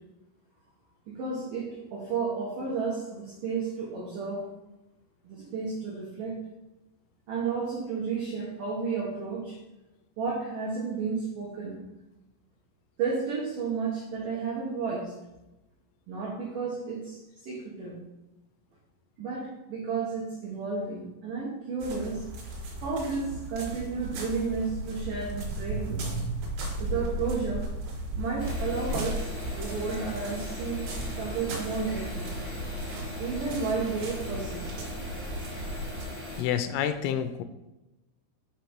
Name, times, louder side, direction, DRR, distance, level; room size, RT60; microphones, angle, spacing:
voice 1, 1.1-4.5 5.2-6.4 7.3-9.6 10.2-11.8 13.0-15.1 16.1-18.0 19.2-22.3 22.8-26.2 26.8-27.7 28.2-29.3 29.6-32.3 33.2-34.7, right 5 dB, 85° right, -4 dB, 1.8 m, -32 dB
sound 1, 21.8-36.0, right 1 dB, 65° right, 2.6 m, -36 dB
sound 2, 28.4-36.4, left 1 dB, 45° left, 0.7 m, -39 dB
voice 2, 36.4-37.4, left 9 dB, 85° left, 10 dB, 3.3 m, -28 dB
8.0 x 5.1 x 4.4 m, 0.98 s
omnidirectional pair, 6.0 m